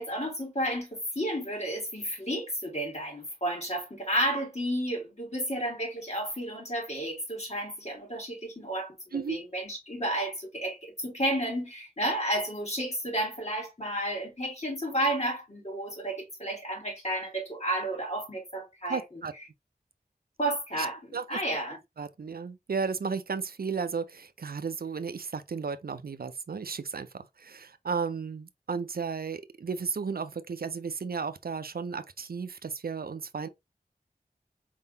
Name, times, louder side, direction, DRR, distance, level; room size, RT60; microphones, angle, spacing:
voice 1, 0.0-19.2 20.4-21.8, right 1 dB, 45° left, 2.9 m, -32 dB
voice 2, 18.9-19.3 20.8-20.9 21.1-21.4 22.0-33.5, right 5 dB, 70° right, 0.5 m, -34 dB
4.6 x 3.7 x 2.7 m
wide cardioid pair, 50°, 16 cm